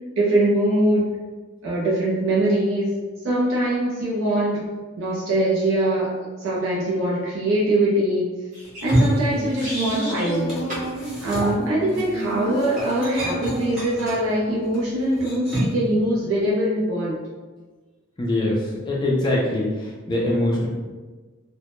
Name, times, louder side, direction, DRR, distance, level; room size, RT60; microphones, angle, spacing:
voice 1, 0.2-1.1 1.6-3.0 3.2-4.7 5.0-8.3 8.8-10.5 11.2-17.2, right 1 dB, 70° right, -6 dB, 0.4 m, -22 dB
sound 1, 8.5-10.4 10.7-10.9 11.4-11.6, equal, 35° right, 0.7 m, -34 dB
sound 2, 8.6-10.1 10.3-15.9, equal, ahead, 0.7 m, -28 dB
sound 3, 9.3-11.3 11.8-14.2 14.6-14.7, right 1 dB, 85° left, 0.5 m, -30 dB
voice 2, 18.2-20.7, left 1 dB, 20° left, -4 dB, 0.3 m, -23 dB
2.1 x 2.0 x 2.9 m, 1.3 s
head